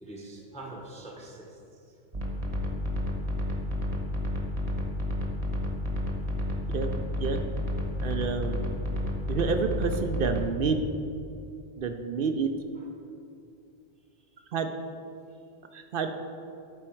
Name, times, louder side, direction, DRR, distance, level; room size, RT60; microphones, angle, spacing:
voice 1, 0.0-1.9 12.7-12.9 14.2-14.6 15.3-15.4, right 2 dB, 5° left, 0 dB, 0.8 m, -45 dB
sound 1, 2.1-10.4, left 1 dB, 35° right, 1.0 m, -31 dB
voice 2, 8.0-8.6 9.3-10.8 11.8-12.5 14.5-14.7 15.7-16.1, right 5 dB, 60° right, 7 dB, 0.6 m, -28 dB
11.5 x 4.4 x 4.4 m, 2.5 s
omnidirectional pair, 1.2 m